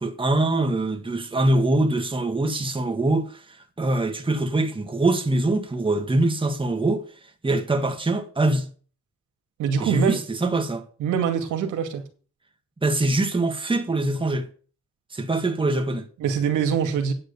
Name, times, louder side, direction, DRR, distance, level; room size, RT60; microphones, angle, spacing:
voice 1, 0.0-7.1 7.4-8.7 9.8-10.9 12.8-14.5 15.1-16.1, right 2 dB, 15° right, 1.8 m, -23 dB
voice 2, 9.6-10.2 11.0-12.0 16.2-17.1, right 7 dB, 80° right, 2.3 m, -23 dB
9.5 x 6.5 x 6.8 m
cardioid pair, 90°, 30 cm